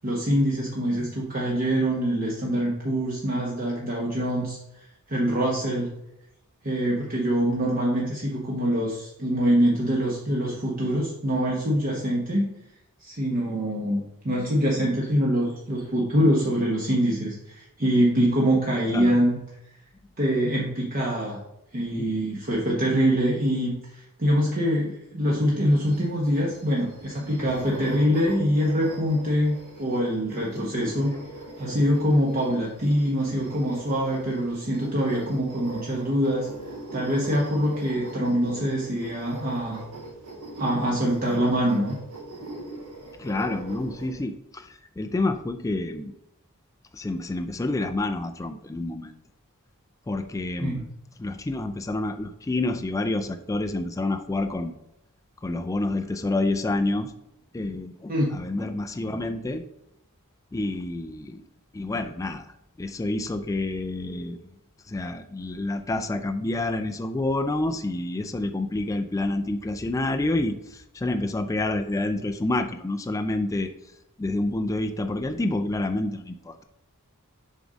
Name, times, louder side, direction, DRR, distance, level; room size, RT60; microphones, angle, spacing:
voice 1, 0.0-4.6 5.1-5.9 6.6-12.5 13.0-19.4 20.2-21.4 21.7-31.1 31.6-36.5 36.9-39.8 40.6-42.0 50.6-50.8 58.1-58.3, equal, 40° right, -3 dB, 1.0 m, -24 dB
sound 1, 25.5-44.1, right 2 dB, 80° right, 2.2 m, -41 dB
voice 2, 43.2-46.1 46.9-49.1 50.1-50.9 51.2-54.7 55.4-57.1 57.5-59.6 60.5-61.4 61.7-62.5 62.8-64.5 64.9-73.7 74.2-76.6, left 2 dB, 15° left, 7 dB, 0.3 m, -28 dB
6.9 x 3.7 x 5.1 m, 0.84 s
head